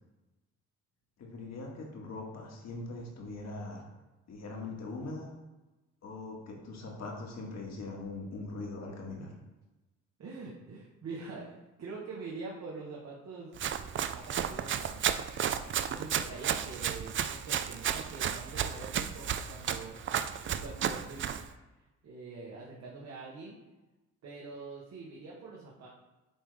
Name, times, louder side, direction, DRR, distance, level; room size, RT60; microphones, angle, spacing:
voice 1, 1.2-3.8 4.3-5.3 6.0-9.3, left 2 dB, 60° left, -1 dB, 1.8 m, -41 dB
voice 2, 10.2-13.5 14.1-15.2 15.8-20.0 20.4-21.3 22.0-23.6 24.2-25.9, right 3 dB, 60° right, -4 dB, 1.3 m, -44 dB
Run, 13.6-21.5, right 9 dB, 40° right, 0.4 m, -33 dB
8.6 x 3.6 x 3.4 m, 1.1 s
cardioid pair, 90°, 30 cm